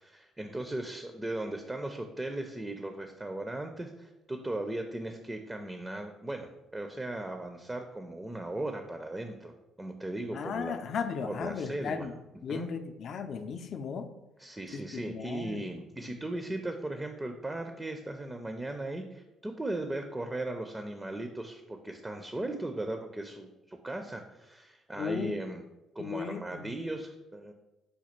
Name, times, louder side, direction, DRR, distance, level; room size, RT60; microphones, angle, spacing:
voice 1, 0.0-9.5 9.8-10.8 11.2-12.1 12.5-12.7 14.4-25.6 26.0-27.5, right 1 dB, 15° right, 5 dB, 0.4 m, -37 dB
voice 2, 10.3-12.1 12.4-14.1 14.7-14.8 15.1-15.6 25.0-25.4 26.0-26.8, left 6 dB, 60° left, 8 dB, 0.4 m, -36 dB
5.1 x 2.3 x 4.3 m, 0.98 s
supercardioid pair, 75°, 0 cm